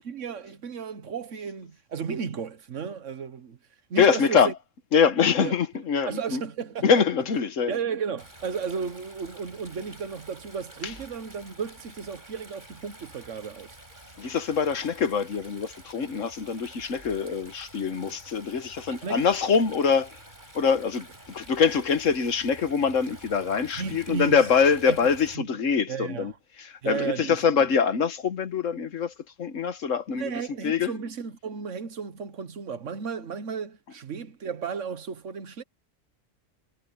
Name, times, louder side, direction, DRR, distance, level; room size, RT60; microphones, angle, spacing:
voice 1, 0.0-3.6 3.9-4.5 5.4-5.6 6.1-6.9 7.7-13.8 19.0-19.2 23.7-24.5 24.9-25.0 25.3-25.4 25.9-26.4 26.8-27.4 30.1-35.6, right 6 dB, 70° right, 1.5 m, -34 dB
voice 2, 4.0-4.5 4.9-6.4 6.8-7.7 10.8-10.9 14.2-20.1 20.5-26.3 26.6-29.1 29.4-30.9, left 6 dB, 75° left, 1.6 m, -24 dB
Stream, 8.2-25.3, right 1 dB, 35° right, 7.2 m, -49 dB
omnidirectional pair, 1.3 m